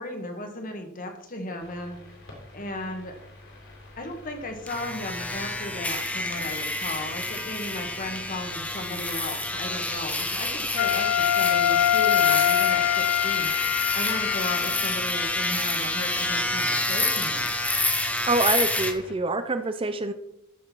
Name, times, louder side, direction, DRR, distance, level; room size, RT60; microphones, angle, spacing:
voice 1, 0.0-2.0 2.5-3.1 4.0-17.5, left 1 dB, 40° left, 4 dB, 1.9 m, -35 dB
sound 1, 1.6-19.1, left 1 dB, 60° left, 3.8 m, -46 dB
sound 2, 4.7-18.9, left 2 dB, 5° left, 0.8 m, -28 dB
Wind instrument woodwind instrument, 10.8-15.1, left 11 dB, 85° left, 0.3 m, -24 dB
voice 2, 18.3-20.1, right 2 dB, 25° right, 9 dB, 0.5 m, -25 dB
14.0 x 6.5 x 4.6 m, 0.79 s
head